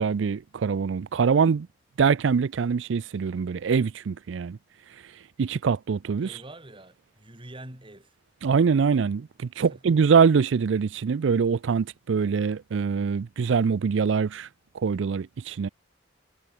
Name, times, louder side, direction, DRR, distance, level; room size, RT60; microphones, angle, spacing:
voice 1, 0.0-1.7 2.0-4.6 5.4-6.4 8.4-14.5 14.7-15.7, right 6 dB, 80° right, 0.4 m, -24 dB
voice 2, 6.2-8.1 9.6-9.8, right 1 dB, 30° right, 3.6 m, -45 dB
head